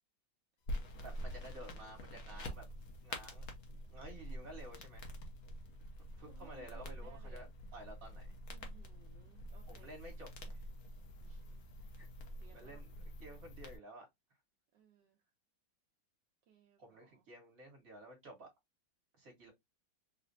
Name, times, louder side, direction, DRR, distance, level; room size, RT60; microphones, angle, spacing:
sound 1, 0.7-13.8, equal, 55° left, 1.1 m, -47 dB
voice 1, 1.0-2.7 3.0-3.5 3.9-5.1 6.2-7.5 7.7-8.4 9.7-10.6 11.3-11.4 12.0-12.1 12.5-12.9 13.2-14.1 16.8-18.5 19.2-19.5, right 1 dB, 45° right, 2.0 m, -53 dB
voice 2, 6.3-7.5 8.5-9.9 11.1-11.7 12.4-12.8 14.7-15.2 16.5-17.2, right 8 dB, 70° right, 1.3 m, -63 dB
4.1 x 2.5 x 2.7 m
omnidirectional pair, 2.1 m